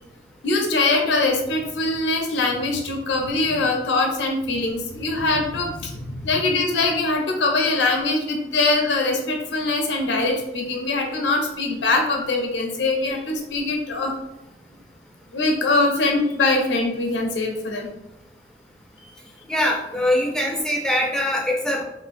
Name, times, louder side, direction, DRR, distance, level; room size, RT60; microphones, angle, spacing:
voice 1, 0.4-14.1 15.3-17.9, left 2 dB, 75° left, 2 dB, 0.5 m, -22 dB
voice 2, 19.5-21.8, left 1 dB, 5° left, -1 dB, 0.3 m, -22 dB
3.1 x 2.1 x 2.4 m, 0.90 s
head